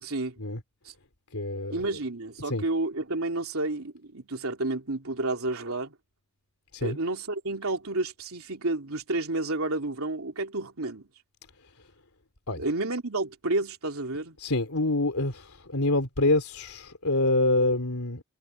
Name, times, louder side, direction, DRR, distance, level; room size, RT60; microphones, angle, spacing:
voice 1, 0.0-0.4 0.8-0.9 1.7-5.9 6.8-11.1 12.6-14.4, right 2 dB, 80° right, 3.0 m, -30 dB
voice 2, 1.3-1.8 2.4-2.6 6.7-7.0 12.5-12.6 14.4-18.2, left 2 dB, 85° left, 3.3 m, -26 dB
head